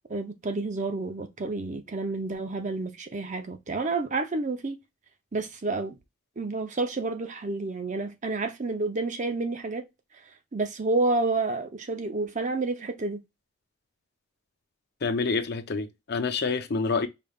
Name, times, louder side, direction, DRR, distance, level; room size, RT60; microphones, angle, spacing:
voice 1, 0.1-4.8 5.3-6.0 6.4-9.8 10.5-13.2, right 3 dB, 40° right, 0.7 m, -29 dB
voice 2, 15.0-17.1, left 4 dB, 55° left, 0.6 m, -27 dB
5.2 x 3.2 x 2.3 m
head